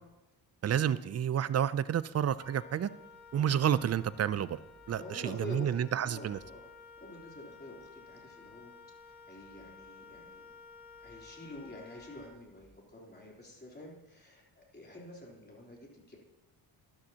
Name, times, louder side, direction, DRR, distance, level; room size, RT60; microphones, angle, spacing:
voice 1, 0.6-2.9 3.3-4.6 4.9-6.4, right 9 dB, 35° right, 16 dB, 0.4 m, -30 dB
Wind instrument woodwind instrument, 2.4-12.8, left 4 dB, 60° left, 3.7 m, -54 dB
voice 2, 4.9-6.7 7.0-8.7 9.3-10.5 11.0-16.2, left 1 dB, 25° left, -2 dB, 3.5 m, -48 dB
12.5 x 12.5 x 2.9 m, 0.96 s
cardioid pair, 90°, 43 cm